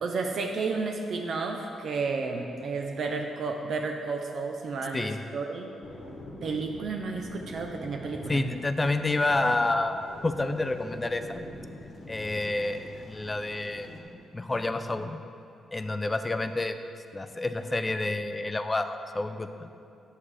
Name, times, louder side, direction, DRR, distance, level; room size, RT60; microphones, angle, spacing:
voice 1, 0.0-5.7 6.4-8.4, right 4 dB, 55° right, 3 dB, 0.5 m, -32 dB
sound 1, 5.8-14.0, left 1 dB, 45° left, 1.1 m, -45 dB
voice 2, 8.3-11.4 12.1-13.9 14.3-15.2 15.7-16.8 17.1-19.7, left 2 dB, 15° left, 8 dB, 0.3 m, -29 dB
10.0 x 7.3 x 3.2 m, 2.6 s
wide cardioid pair, 165°, 0 cm